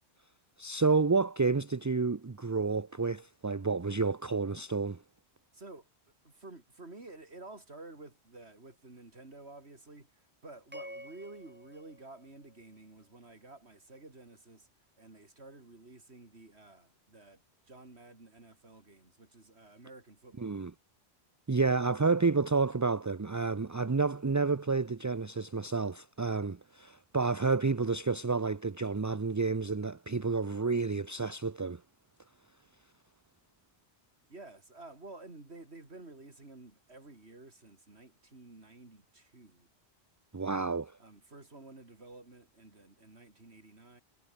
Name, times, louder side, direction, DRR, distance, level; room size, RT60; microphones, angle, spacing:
voice 1, 0.6-5.0 20.4-20.7 21.5-31.8 40.3-40.9, right 4 dB, 25° right, 0.4 m, -30 dB
voice 2, 5.5-5.9 6.2-14.7 15.0-20.6 34.3-39.7 41.0-44.0, right 2 dB, 75° right, 4.2 m, -51 dB
sound 1, 10.7-13.1, equal, 10° right, 4.9 m, -50 dB
omnidirectional pair, 1.1 m